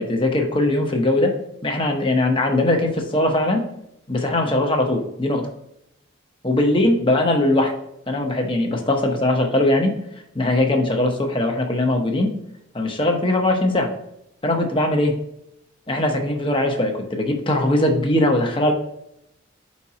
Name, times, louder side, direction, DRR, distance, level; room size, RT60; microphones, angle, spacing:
voice 1, 0.0-1.3 1.6-3.6 4.1-5.5 6.4-7.7 8.1-9.9 10.3-12.3 12.7-13.9 14.4-15.2 15.9-18.7, left 1 dB, 25° left, 3 dB, 0.8 m, -20 dB
5.2 x 4.2 x 4.8 m, 0.80 s
head